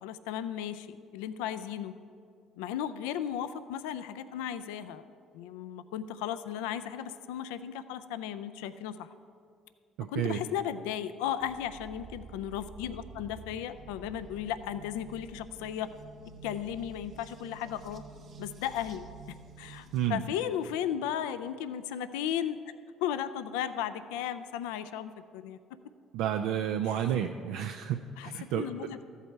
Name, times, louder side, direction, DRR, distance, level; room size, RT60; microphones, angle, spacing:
voice 1, 0.0-1.9 2.6-5.0 5.3-9.1 10.1-15.9 16.4-18.0 18.4-22.6 23.0-25.6 28.2-29.0, left 10 dB, 85° left, 12 dB, 0.3 m, -35 dB
voice 2, 10.0-10.4 19.9-20.2 26.1-28.6, right 10 dB, 80° right, 5 dB, 0.4 m, -31 dB
sound 1, 11.4-20.1, right 4 dB, 60° right, 1.3 m, -49 dB
14.0 x 8.1 x 4.5 m, 2.3 s
hypercardioid pair, 65°, 0 cm